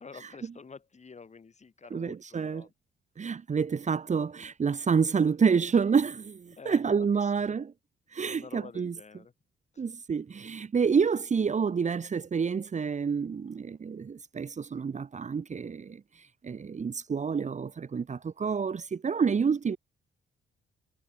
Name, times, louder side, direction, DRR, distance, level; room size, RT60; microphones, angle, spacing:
voice 1, 0.0-2.7 6.6-7.6 8.3-9.3 9.7-9.9, left 5 dB, 35° left, 7.3 m, -49 dB
voice 2, 1.9-2.6 3.2-7.7 8.1-8.9 9.8-16.0 16.4-19.8, right 6 dB, 35° right, 1.7 m, -28 dB
cardioid pair, 90°, 20 cm